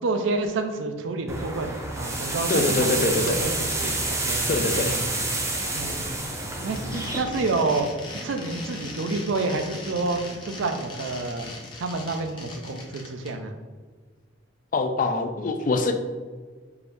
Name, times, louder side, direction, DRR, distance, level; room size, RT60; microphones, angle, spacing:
voice 1, 0.0-5.1 5.7-6.0 6.6-7.9 8.2-13.5, right 3 dB, 90° right, 6 dB, 0.5 m, -29 dB
sound 1, 1.3-7.2, right 2 dB, 15° right, 0.6 m, -28 dB
voice 2, 2.2-3.4 4.5-5.0 14.7-15.9, left 3 dB, 45° left, 7 dB, 0.4 m, -24 dB
sound 2, 6.7-13.3, left 2 dB, 25° left, 0.7 m, -38 dB
4.7 x 2.6 x 3.4 m, 1.5 s
head